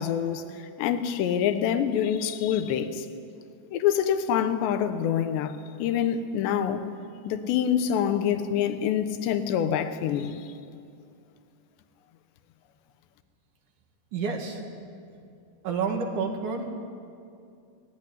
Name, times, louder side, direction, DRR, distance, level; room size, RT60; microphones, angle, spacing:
voice 1, 0.0-3.1 3.7-6.9 7.3-10.5, left 9 dB, 90° left, 3.3 m, -26 dB
voice 2, 14.1-14.6 15.6-16.8, right 5 dB, 55° right, 3.1 m, -29 dB
19.5 x 17.0 x 10.0 m
omnidirectional pair, 4.9 m